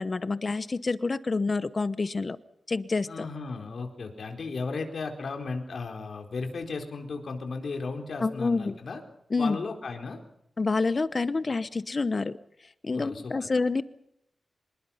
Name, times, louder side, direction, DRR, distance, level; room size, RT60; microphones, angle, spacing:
voice 1, 0.0-2.4 2.7-3.3 8.2-8.8 9.3-9.6 10.6-12.4 12.8-13.8, left 3 dB, 40° left, 15 dB, 0.9 m, -27 dB
voice 2, 3.1-9.0 9.4-10.2 12.9-13.5, left 4 dB, 70° left, 4 dB, 4.2 m, -35 dB
26.0 x 20.5 x 5.8 m, 0.77 s
wide cardioid pair, 120°, 0 cm